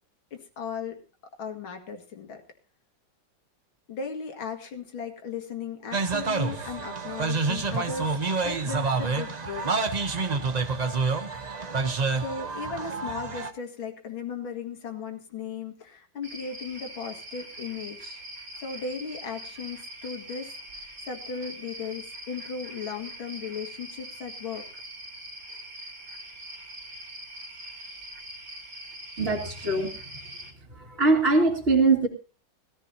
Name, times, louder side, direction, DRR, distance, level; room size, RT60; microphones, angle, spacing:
voice 1, 0.3-1.0 1.4-2.4 3.9-8.2 8.4-9.7 12.2-18.2 18.6-20.5 21.0-24.6, left 6 dB, 85° left, 5 dB, 2.7 m, -36 dB
sound 1, 5.9-13.5, right 4 dB, 50° right, 0.4 m, -28 dB
sound 2, 16.2-30.5, right 1 dB, 80° right, 4.6 m, -42 dB
voice 2, 29.2-29.9 30.7-32.1, right 3 dB, 30° right, -4 dB, 2.5 m, -22 dB
20.0 x 14.0 x 2.8 m, 0.35 s
omnidirectional pair, 2.2 m